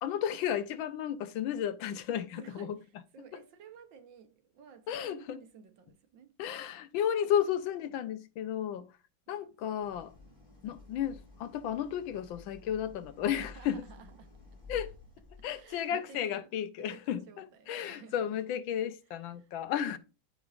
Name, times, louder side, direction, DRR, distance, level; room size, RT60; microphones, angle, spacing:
voice 1, 0.0-2.8 3.3-3.4 4.9-5.4 6.4-8.9 9.3-10.1 10.6-13.8 14.7-14.9 15.4-20.0, left 9 dB, 80° left, 1.5 m, -33 dB
voice 2, 2.3-6.3 9.3-9.5 13.3-14.3 15.5-16.5 16.8-18.4 19.4-19.5 19.9-20.0, right 7 dB, 75° right, 1.7 m, -54 dB
Idling, 9.8-15.9, left 4 dB, 20° left, 3.9 m, -52 dB
12.5 x 5.2 x 2.5 m
omnidirectional pair, 2.1 m